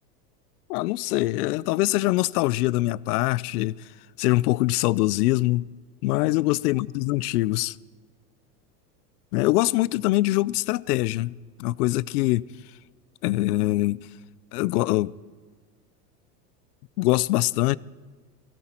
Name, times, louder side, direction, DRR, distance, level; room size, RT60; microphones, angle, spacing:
voice 1, 0.7-3.8 4.2-5.7 6.0-7.8 9.3-12.5 13.2-14.0 14.5-15.1 17.0-17.8, left 18 dB, 65° left, 0.6 m, -23 dB
19.0 x 17.0 x 4.4 m
supercardioid pair, 125°, 49 cm